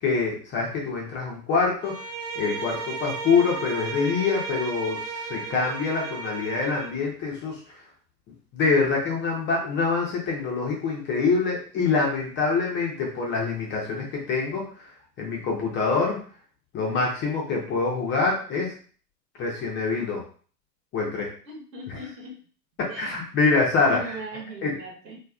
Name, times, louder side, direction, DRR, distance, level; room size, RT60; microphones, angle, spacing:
voice 1, 0.0-1.9 2.4-5.0 5.3-7.6 8.5-14.6 15.2-16.2 16.7-18.7 19.4-20.2 20.9-21.3 21.9-22.0 23.0-24.2 24.6-24.7, left 4 dB, 25° left, -2 dB, 0.9 m, -25 dB
Bowed string instrument, 1.8-7.0, right 5 dB, 50° right, 0.6 m, -34 dB
voice 2, 21.5-22.4 22.9-23.0 23.8-25.2, equal, 75° right, -2 dB, 1.5 m, -38 dB
3.1 x 3.0 x 2.4 m, 0.42 s
hypercardioid pair, 115°, 50 cm